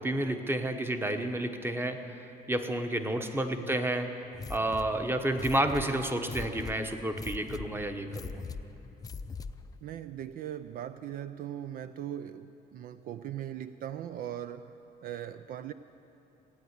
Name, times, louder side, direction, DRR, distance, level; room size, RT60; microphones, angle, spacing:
voice 1, 0.0-2.0 2.5-4.1 4.5-8.4, right 1 dB, 15° right, 7 dB, 1.0 m, -30 dB
sound 1, 4.3-9.8, left 4 dB, 20° left, 0.5 m, -42 dB
voice 2, 9.8-15.7, right 11 dB, 60° right, 11 dB, 0.4 m, -40 dB
16.5 x 9.4 x 8.1 m, 2.9 s
cardioid pair, 110°, 17 cm